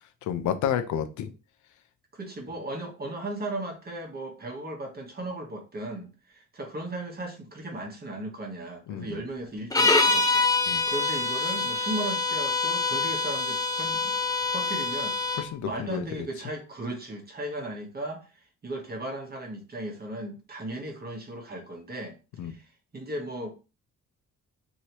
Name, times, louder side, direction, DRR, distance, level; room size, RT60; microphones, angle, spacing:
voice 1, 0.2-1.3 8.9-9.2 10.7-10.8 15.4-16.3 22.4-22.5, left 9 dB, 75° left, 0.5 m, -30 dB
voice 2, 2.1-14.1 14.5-22.2 22.4-23.5, right 1 dB, 30° right, 1.0 m, -36 dB
sound 1, 9.7-15.5, left 3 dB, 10° left, 0.5 m, -25 dB
3.1 x 2.8 x 2.9 m
cardioid pair, 90°, 30 cm